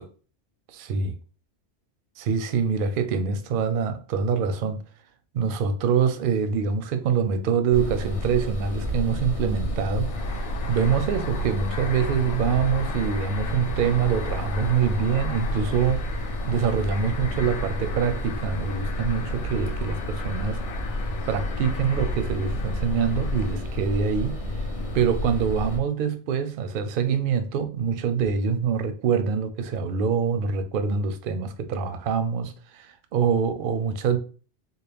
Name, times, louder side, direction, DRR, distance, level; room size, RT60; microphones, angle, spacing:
voice 1, 0.7-1.1 2.2-4.8 5.3-10.1 10.3-16.1 16.5-20.6 21.3-24.4 24.9-34.2, right 6 dB, 60° right, 0.6 m, -25 dB
sound 1, 7.7-25.8, equal, 40° left, 0.6 m, -30 dB
sound 2, 9.9-23.6, left 6 dB, 85° left, 1.0 m, -39 dB
4.1 x 2.1 x 3.4 m
omnidirectional pair, 1.2 m